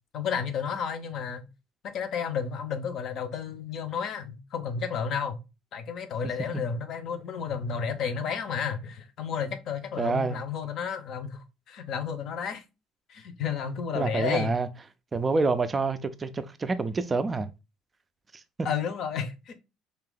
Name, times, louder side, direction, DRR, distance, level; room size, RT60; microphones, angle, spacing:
voice 1, 0.1-1.5 1.9-5.4 5.7-12.6 13.1-14.5 18.6-19.5, left 6 dB, 50° left, 0.7 m, -32 dB
voice 2, 10.0-10.4 13.9-14.7 15.1-17.5, right 4 dB, 20° right, 0.4 m, -27 dB
3.6 x 2.8 x 3.8 m
cardioid pair, 150°, 0 cm